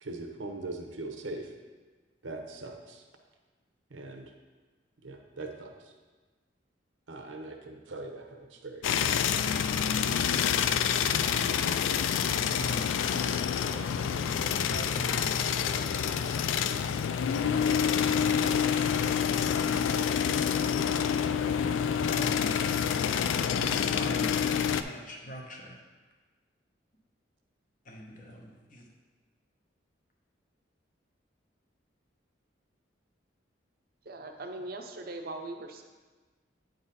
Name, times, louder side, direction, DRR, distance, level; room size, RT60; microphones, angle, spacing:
voice 1, 0.0-1.5 2.2-3.0 3.9-4.3 5.0-5.9 7.1-9.1 9.4-9.5, right 2 dB, 85° right, 4 dB, 0.8 m, -41 dB
sound 1, 8.8-24.8, left 8 dB, 85° left, 0.3 m, -27 dB
sound 2, 9.2-19.8, equal, 10° left, 0.6 m, -49 dB
voice 2, 11.4-12.9 14.3-15.4 17.2-18.7 20.3-20.7 21.3-22.6 23.5-25.8 27.8-28.9, equal, 45° left, 0 dB, 1.0 m, -43 dB
voice 3, 34.0-35.8, right 2 dB, 50° right, 4 dB, 0.6 m, -40 dB
8.9 x 3.9 x 4.1 m, 1.3 s
head